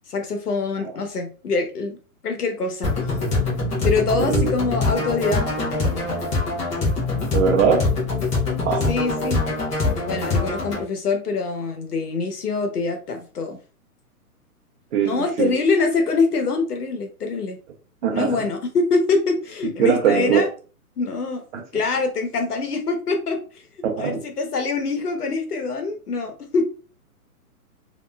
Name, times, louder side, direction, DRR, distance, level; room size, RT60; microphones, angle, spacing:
voice 1, 0.1-2.0 2.2-2.9 3.8-5.7 8.9-9.4 9.9-13.6 15.0-17.6 18.1-20.5 21.0-23.4 24.0-26.6, left 4 dB, 80° left, 5 dB, 1.1 m, -24 dB
sound 1, 2.8-10.8, left 3 dB, 15° left, 0.8 m, -23 dB
voice 2, 4.2-4.5 7.3-7.9 8.6-8.9 14.9-15.5 18.0-18.4 19.8-20.4 23.8-24.2, right 7 dB, 50° right, 1 dB, 0.7 m, -20 dB
3.1 x 2.8 x 2.2 m, 0.37 s
hypercardioid pair, 135°, 46 cm